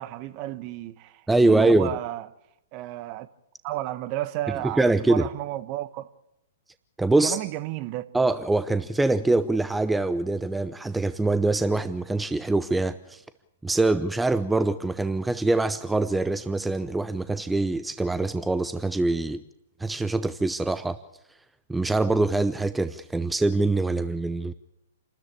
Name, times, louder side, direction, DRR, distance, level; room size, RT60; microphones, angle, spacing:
voice 1, 0.0-2.3 2.7-3.3 3.6-6.1 7.2-8.1, right 15 dB, 40° right, 1.2 m, -32 dB
voice 2, 1.3-1.9 4.6-5.3 7.0-7.4 8.1-13.2 13.6-19.4 19.8-21.0 21.7-24.5, right 2 dB, 5° right, 0.8 m, -24 dB
28.0 x 13.5 x 8.8 m
hypercardioid pair, 120°, 0 cm